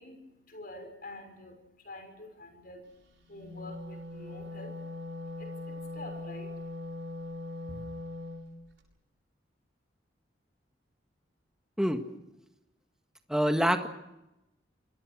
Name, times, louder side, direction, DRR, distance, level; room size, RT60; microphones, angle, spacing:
voice 1, 0.0-6.5 7.7-7.8, left 2 dB, 50° left, 5 dB, 6.2 m, -48 dB
Wind instrument woodwind instrument, 3.3-8.4, left 2 dB, 65° right, 7.8 m, -40 dB
voice 2, 13.3-13.9, equal, 5° right, 5 dB, 1.8 m, -25 dB
28.5 x 22.0 x 6.3 m, 0.93 s
head